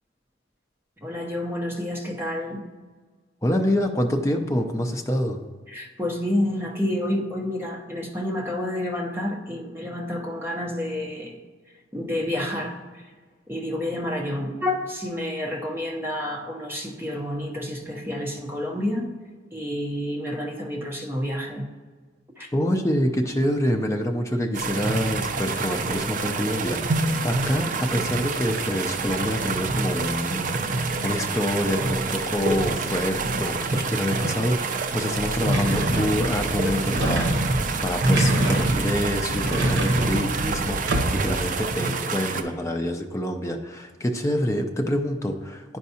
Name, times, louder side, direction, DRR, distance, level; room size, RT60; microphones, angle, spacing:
voice 1, 1.0-2.7 5.7-11.4 11.9-13.0 13.5-19.1 19.5-21.7 22.4-22.5, left 1 dB, 10° right, -1 dB, 0.8 m, -29 dB
voice 2, 3.4-5.4 22.5-45.8, equal, 15° left, 3 dB, 0.5 m, -26 dB
sound 1, 24.5-42.4, right 4 dB, 45° right, 0.4 m, -27 dB
sound 2, 35.4-41.4, right 1 dB, 70° right, 0.9 m, -25 dB
10.0 x 4.6 x 2.8 m, 1.4 s
head